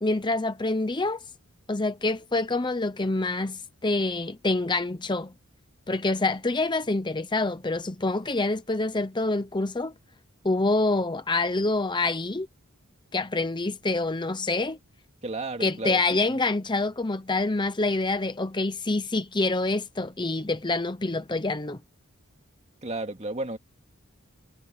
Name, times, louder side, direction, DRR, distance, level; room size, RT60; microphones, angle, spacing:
voice 1, 0.0-1.2 1.7-5.3 5.9-9.9 10.4-12.5 13.1-14.8 15.6-21.8, left 2 dB, 20° left, 0.8 m, -26 dB
voice 2, 15.2-16.0 16.3-16.4 22.8-23.6, right 2 dB, 30° right, 2.4 m, -32 dB
head